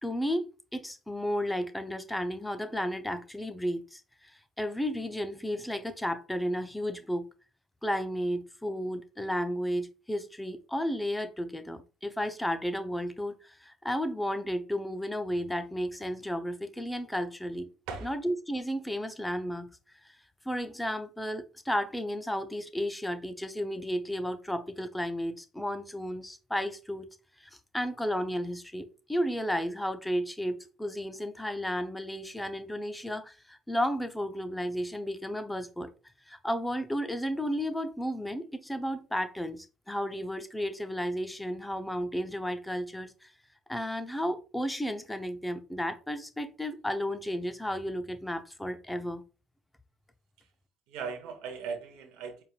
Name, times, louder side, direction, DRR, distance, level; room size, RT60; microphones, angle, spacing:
voice 1, 0.0-4.0 4.6-7.3 7.8-17.7 18.0-19.7 20.5-27.1 27.4-35.9 36.3-43.3 43.7-49.2, equal, 10° left, 0.7 m, -33 dB
voice 2, 50.9-52.4, right 5 dB, 75° right, 0.8 m, -38 dB
4.5 x 3.4 x 2.4 m
hypercardioid pair, 65°, 0 cm